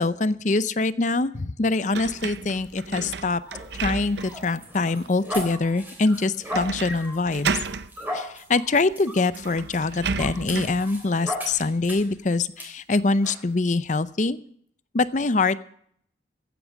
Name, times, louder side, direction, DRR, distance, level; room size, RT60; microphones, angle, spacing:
voice 1, 0.0-3.4 3.8-7.6 8.1-14.4 14.9-15.6, left 3 dB, 40° left, 15 dB, 0.6 m, -24 dB
sound 1, 1.9-4.5 5.0-5.1 6.5-7.0 7.3-7.9 8.9-9.0 9.3-10.8, right 5 dB, 65° right, 0.6 m, -32 dB
sound 2, 3.4-12.2 12.6-12.7 13.2-13.4, equal, 10° right, 3.5 m, -37 dB
15.5 x 9.4 x 6.3 m, 0.64 s
head